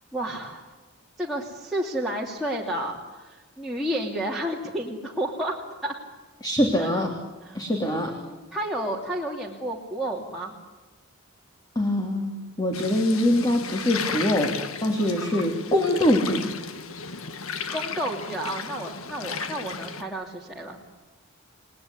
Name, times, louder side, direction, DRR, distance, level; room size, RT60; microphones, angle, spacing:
voice 1, 0.1-0.7 1.2-5.9 6.8-7.0 7.4-10.5 17.7-20.8, right 1 dB, ahead, -4 dB, 2.9 m, -31 dB
voice 2, 6.4-7.1 7.5-8.1 11.7-16.5, left 1 dB, 20° left, 2 dB, 3.1 m, -23 dB
sound 1, 12.7-20.0, left 5 dB, 80° left, 1.7 m, -34 dB
30.0 x 20.0 x 9.8 m, 1.3 s
head